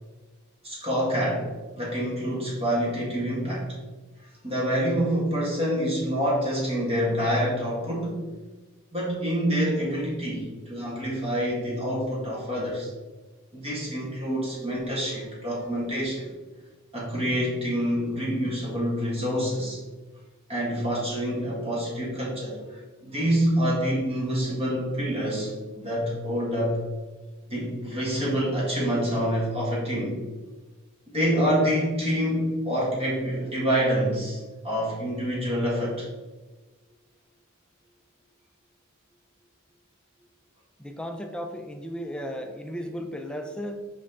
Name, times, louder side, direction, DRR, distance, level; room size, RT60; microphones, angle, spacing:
voice 1, 0.6-1.5 1.7-3.7 4.4-8.2 8.9-12.9 13.5-16.3 16.9-19.8 20.5-26.8 27.5-30.2 31.1-36.1, equal, 30° right, -5 dB, 1.6 m, -27 dB
voice 2, 40.8-43.9, equal, 5° left, 4 dB, 0.5 m, -35 dB
5.6 x 4.9 x 3.6 m, 1.3 s
head